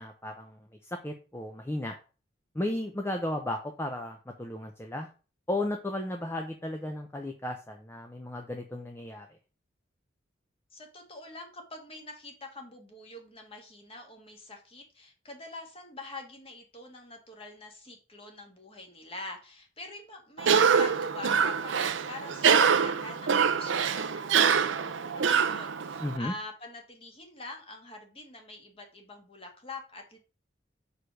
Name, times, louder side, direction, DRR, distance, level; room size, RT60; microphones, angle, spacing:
voice 1, 0.0-1.9 2.5-5.1 5.5-9.4 26.0-26.3, left 1 dB, 15° left, 4 dB, 0.6 m, -34 dB
voice 2, 10.7-30.2, left 2 dB, 30° left, 3 dB, 1.8 m, -45 dB
Cough, 20.4-26.2, right 6 dB, 90° right, 0.6 m, -25 dB
4.9 x 4.9 x 6.3 m, 0.35 s
head